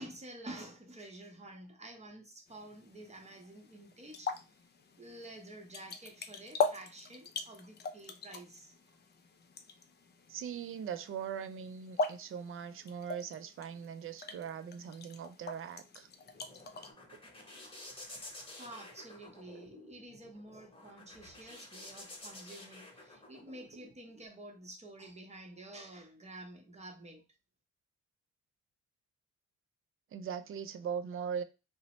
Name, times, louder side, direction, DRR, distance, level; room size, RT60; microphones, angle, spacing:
voice 1, 0.0-4.3 5.0-9.0 18.3-27.2, right 1 dB, 20° right, 0.8 m, -50 dB
sound 1, 2.5-16.9, left 4 dB, 35° left, 0.4 m, -41 dB
voice 2, 10.3-16.1 17.1-17.2 30.1-31.4, right 7 dB, 45° right, 0.4 m, -40 dB
sound 2, 16.0-23.9, left 1 dB, 20° left, 1.1 m, -51 dB
2.8 x 2.0 x 3.0 m
cardioid pair, 90°, 30 cm